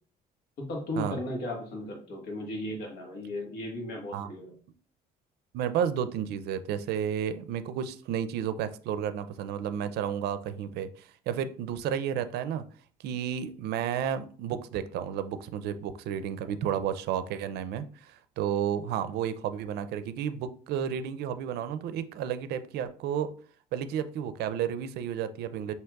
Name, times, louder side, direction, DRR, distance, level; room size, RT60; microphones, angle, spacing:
voice 1, 0.6-4.5, left 1 dB, 80° left, 1 dB, 1.4 m, -36 dB
voice 2, 5.5-12.6 13.0-23.3 23.7-25.7, right 9 dB, 75° right, 11 dB, 0.4 m, -32 dB
5.8 x 2.8 x 2.3 m, 0.44 s
cardioid pair, 110°, 17 cm